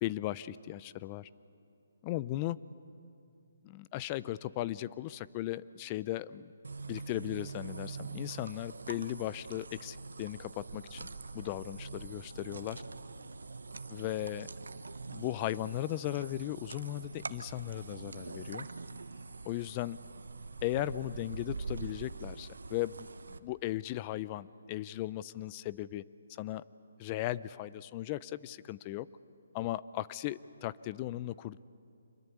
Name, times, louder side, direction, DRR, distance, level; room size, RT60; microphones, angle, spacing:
voice 1, 0.0-1.3 2.0-2.6 3.6-6.5 6.9-11.1 11.3-12.8 13.9-14.5 15.1-18.7 19.5-20.0 20.6-26.0 26.3-26.6 27.0-29.1 29.5-31.6, left 15 dB, 25° left, 18 dB, 0.5 m, -37 dB
sound 1, 6.6-23.4, right 4 dB, 85° right, 1.0 m, -44 dB
25.5 x 22.0 x 8.3 m, 2.6 s
hypercardioid pair, 155°, 0 cm